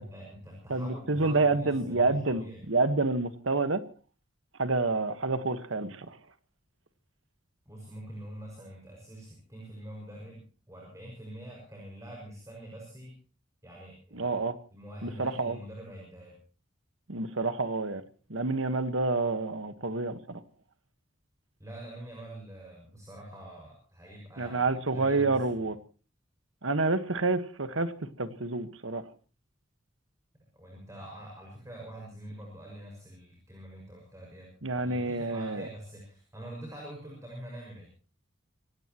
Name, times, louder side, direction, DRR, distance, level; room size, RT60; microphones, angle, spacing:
voice 1, 0.0-2.6 7.7-13.2 13.6-14.3 14.7-16.4 21.6-25.4 30.5-37.9, right 1 dB, 15° right, -1 dB, 6.0 m, -45 dB
voice 2, 0.7-3.8 4.6-6.2 14.1-14.6 15.0-15.6 17.1-18.0 18.3-20.4 24.4-25.8 26.6-29.1 34.6-35.7, right 3 dB, 80° right, 11 dB, 1.5 m, -28 dB
26.0 x 17.5 x 3.1 m, 0.37 s
head